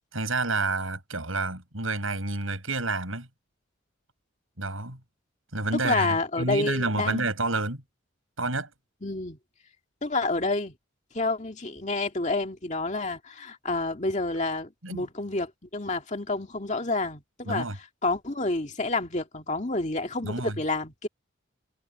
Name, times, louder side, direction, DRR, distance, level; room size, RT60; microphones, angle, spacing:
voice 1, 0.1-3.3 4.6-5.0 5.5-7.8 8.4-8.7 14.8-15.1 17.5-17.8 20.2-20.5, right 3 dB, 70° right, 7.4 m, -29 dB
voice 2, 5.8-7.3 9.0-9.4 10.0-10.7 11.1-17.7 18.0-21.1, left 2 dB, 35° left, 2.1 m, -29 dB
head